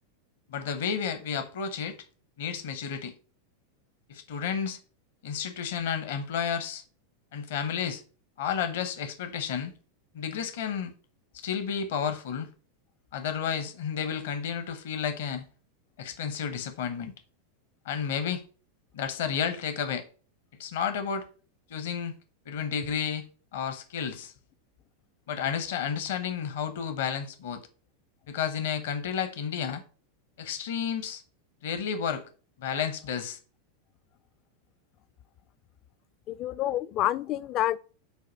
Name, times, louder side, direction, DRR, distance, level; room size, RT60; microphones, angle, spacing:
voice 1, 0.5-2.0 2.4-3.2 4.1-4.8 5.2-6.8 7.3-8.0 8.4-9.7 10.1-10.9 11.3-12.5 13.1-15.4 16.0-17.1 17.8-18.4 18.9-20.1 20.6-21.3 21.7-22.2 22.5-24.3 25.3-27.6 28.3-29.8 30.4-31.2 31.6-32.3 32.6-33.4, left 7 dB, 60° left, 0.8 m, -31 dB
voice 2, 36.3-37.8, left 13 dB, 40° left, 0.3 m, -28 dB
7.9 x 2.7 x 5.4 m
figure-of-eight pair, 90°, 0 cm